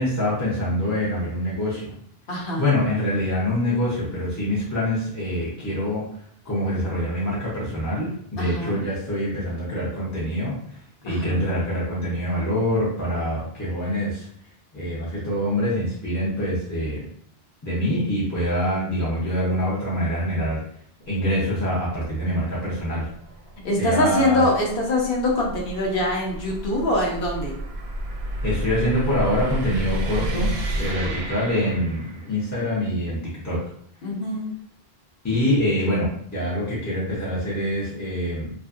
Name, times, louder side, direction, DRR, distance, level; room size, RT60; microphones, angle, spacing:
voice 1, 0.0-1.9 2.6-6.0 6.4-10.6 11.0-14.3 14.7-17.1 17.6-20.6 21.1-23.1 23.8-24.4 28.4-33.2 33.4-33.6 35.2-38.5, left 1 dB, 25° left, -8 dB, 0.5 m, -25 dB
voice 2, 2.3-2.6 8.4-8.8 11.1-11.5 23.6-27.5 31.0-31.2 34.0-34.4, left 1 dB, 65° left, -1 dB, 0.9 m, -24 dB
sound 1, 21.0-32.4, right 1 dB, 80° right, 0.8 m, -32 dB
2.6 x 2.5 x 2.4 m, 0.65 s
omnidirectional pair, 1.0 m